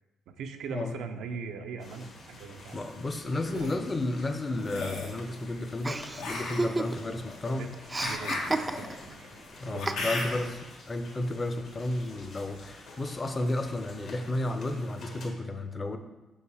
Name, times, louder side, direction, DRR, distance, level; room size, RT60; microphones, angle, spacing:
voice 1, 0.3-2.8 3.5-3.8 7.5-7.7 8.0-9.3 9.6-10.0, right 5 dB, 80° right, 7 dB, 0.5 m, -40 dB
sound 1, 1.8-15.3, left 2 dB, 65° left, 1.4 m, -49 dB
voice 2, 2.7-7.7 9.6-10.6 10.9-16.0, left 2 dB, 30° left, 8 dB, 0.6 m, -32 dB
sound 2, 3.3-3.7 4.6-5.2 6.2-10.6, left 2 dB, 90° left, 1.2 m, -36 dB
Chuckle chortle, 5.8-7.2 7.5-9.1 9.9-10.4, right 2 dB, 20° right, 0.3 m, -32 dB
5.5 x 4.7 x 4.8 m, 1.1 s
cardioid pair, 90°, 0 cm